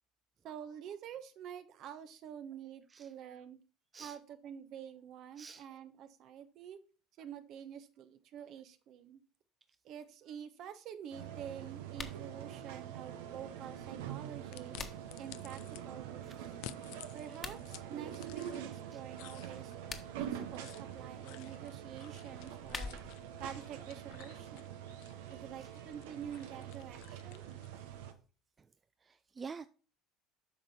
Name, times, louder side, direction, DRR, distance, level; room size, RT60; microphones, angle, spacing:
voice 1, 0.4-3.6 4.0-6.8 7.2-9.2 9.8-14.8 15.2-16.4 17.1-19.7 20.2-23.0 23.4-24.8 25.3-27.4, right 9 dB, 55° right, 1.1 m, -48 dB
sound 1, 11.1-28.1, right 10 dB, 75° right, 1.0 m, -45 dB
sound 2, 11.9-12.2 14.3-15.2 17.3-17.6 19.7-20.3 22.3-23.3, left 4 dB, 30° left, 1.3 m, -45 dB
sound 3, 14.5-15.8 16.4-18.8 19.1-27.8, left 17 dB, 70° left, 0.4 m, -54 dB
voice 2, 29.0-29.7, right 5 dB, 30° right, 0.4 m, -48 dB
8.5 x 5.4 x 4.3 m
hypercardioid pair, 70°, 0 cm